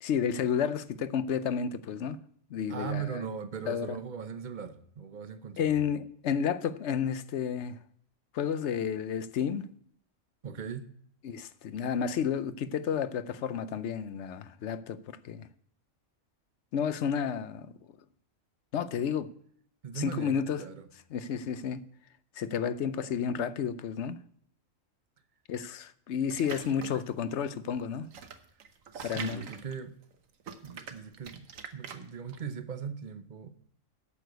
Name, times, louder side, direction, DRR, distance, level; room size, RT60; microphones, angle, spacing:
voice 1, 0.0-2.2 2.5-3.3 3.7-4.0 5.6-7.8 8.3-9.7 11.2-15.5 16.7-17.7 18.7-19.3 19.9-20.6 21.1-21.8 22.4-24.2 25.5-28.1 29.0-29.5, left 7 dB, 65° left, 0.9 m, -31 dB
voice 2, 2.7-5.8 10.4-10.9 19.2-19.3 19.8-20.9 28.9-30.0 30.6-33.5, right 7 dB, 40° right, 0.9 m, -39 dB
sound 1, 26.3-27.1 27.7-30.2 30.4-32.4, right 6 dB, 85° right, 1.4 m, -44 dB
8.5 x 6.6 x 8.0 m
omnidirectional pair, 1.3 m